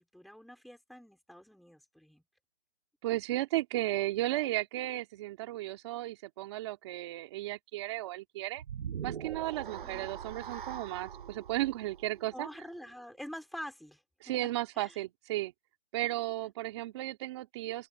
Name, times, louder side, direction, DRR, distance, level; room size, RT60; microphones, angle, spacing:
voice 1, 0.0-2.2 9.8-10.1 12.3-14.0 14.4-14.5 14.8-15.0, equal, ahead, 4.3 m, -46 dB
voice 2, 3.0-8.6 9.0-12.5 14.2-15.5 15.9-17.9, right 16 dB, 20° right, 2.6 m, -34 dB
sound 1, 8.6-12.9, right 8 dB, 45° right, 6.8 m, -42 dB
open air
hypercardioid pair, 165°, 36 cm